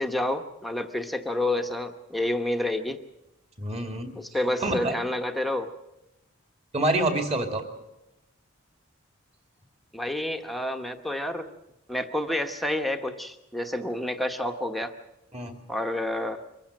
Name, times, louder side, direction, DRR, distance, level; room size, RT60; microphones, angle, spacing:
voice 1, 0.0-3.0 4.1-5.7 9.9-11.5 11.9-14.9 15.7-16.4, left 1 dB, ahead, 4 dB, 1.0 m, -29 dB
voice 2, 3.6-4.1 4.6-5.0 6.7-7.6 15.3-15.6, right 1 dB, 30° right, 5 dB, 2.5 m, -27 dB
24.0 x 15.0 x 7.6 m, 0.92 s
head